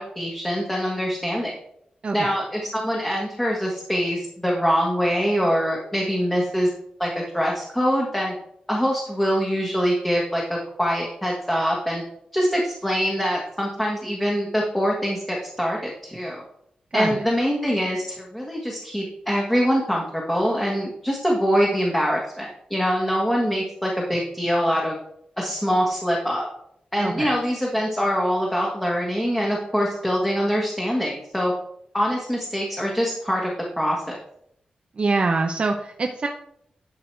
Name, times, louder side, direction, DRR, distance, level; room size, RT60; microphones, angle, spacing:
voice 1, 0.0-1.5 2.1-6.7 7.0-8.3 8.7-12.0 12.3-16.4 16.9-24.9 25.4-26.5 26.9-31.5 31.9-33.5 33.8-34.2, equal, 10° left, -2 dB, 1.5 m, -24 dB
voice 2, 27.0-27.3 35.0-36.3, right 3 dB, 45° right, 3 dB, 0.7 m, -24 dB
12.0 x 4.8 x 4.6 m, 0.73 s
wide cardioid pair, 120°, 3 cm